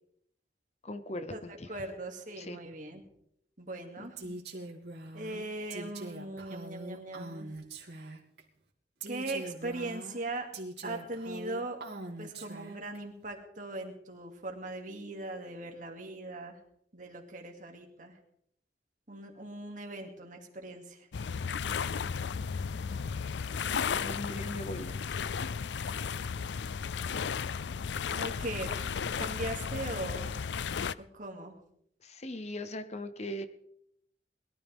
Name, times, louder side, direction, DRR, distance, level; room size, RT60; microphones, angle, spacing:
voice 1, 0.8-1.8 2.4-2.6 4.0-4.4 24.0-25.0 32.0-33.5, left 1 dB, 35° left, 10 dB, 0.9 m, -40 dB
voice 2, 1.7-3.0 3.6-4.2 5.1-7.5 9.1-10.5 10.8-11.8 12.2-16.6 16.9-18.2 19.1-21.1 28.2-28.7 29.2-30.4 31.0-31.5, right 2 dB, 45° right, 2 dB, 2.6 m, -39 dB
Female speech woman speaking, 4.2-8.4 9.0-13.0, right 2 dB, 65° right, 2.7 m, -43 dB
sound 1, 21.1-30.9, left 6 dB, 75° left, 0.4 m, -34 dB
21.5 x 13.0 x 3.6 m, 0.73 s
head